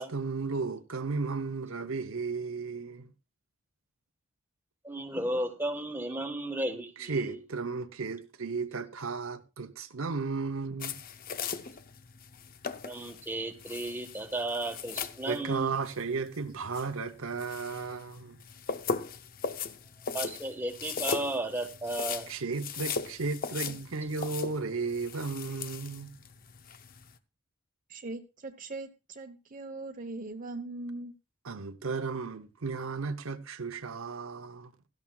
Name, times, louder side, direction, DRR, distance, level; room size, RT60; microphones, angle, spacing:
voice 1, 0.1-3.1 7.1-11.0 15.3-18.4 22.3-26.1 31.4-34.7, right 4 dB, 70° right, 0.8 m, -34 dB
voice 2, 4.8-7.4 12.8-15.7 20.1-22.3, right 1 dB, 10° right, 1.3 m, -34 dB
sound 1, 10.8-27.1, left 5 dB, 40° left, 0.6 m, -39 dB
voice 3, 27.9-31.1, right 2 dB, 40° right, 0.9 m, -40 dB
17.0 x 13.0 x 2.3 m
head